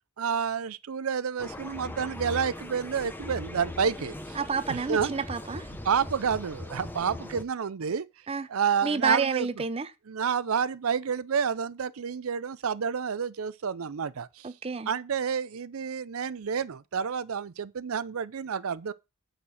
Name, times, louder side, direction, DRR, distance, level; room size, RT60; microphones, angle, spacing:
voice 1, 0.2-4.4 4.7-5.1 5.8-8.1 8.5-9.5 10.1-14.5 14.9-18.9, right 6 dB, 85° right, 0.5 m, -29 dB
sound 1, 1.4-7.4, left 1 dB, 10° left, 0.8 m, -40 dB
voice 2, 4.4-5.7 8.3-8.5 8.8-9.9 14.4-14.9, right 5 dB, 30° right, 0.5 m, -29 dB
8.6 x 4.5 x 6.3 m
head